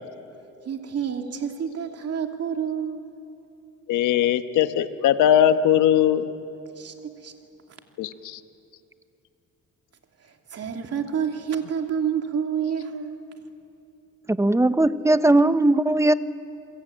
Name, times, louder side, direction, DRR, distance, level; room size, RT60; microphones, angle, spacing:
voice 1, 0.6-3.0 6.7-7.3 10.2-13.2, right 7 dB, 55° right, 4 dB, 2.7 m, -29 dB
voice 2, 3.9-6.3 8.0-8.4, left 10 dB, 85° left, 10 dB, 1.2 m, -20 dB
voice 3, 14.3-16.1, right 2 dB, 10° right, 13 dB, 0.8 m, -19 dB
28.0 x 22.0 x 8.9 m, 2.7 s
cardioid pair, 90°, 30 cm